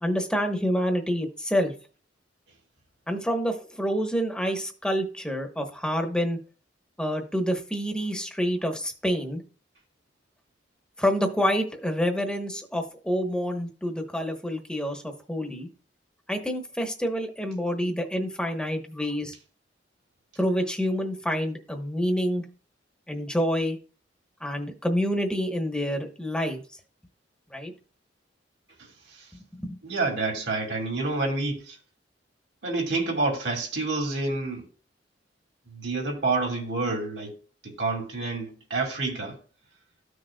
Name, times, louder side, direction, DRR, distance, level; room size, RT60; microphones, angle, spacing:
voice 1, 0.0-1.7 3.1-6.4 7.0-9.4 11.0-15.7 16.3-19.3 20.4-22.4 23.1-23.8 24.4-26.6 27.5-27.7 29.6-29.8, equal, 5° left, 1.0 m, -27 dB
voice 2, 29.8-31.8 32.6-34.6 35.7-37.4 37.6-39.4, right 3 dB, 70° right, 2.3 m, -28 dB
13.5 x 6.2 x 2.2 m
head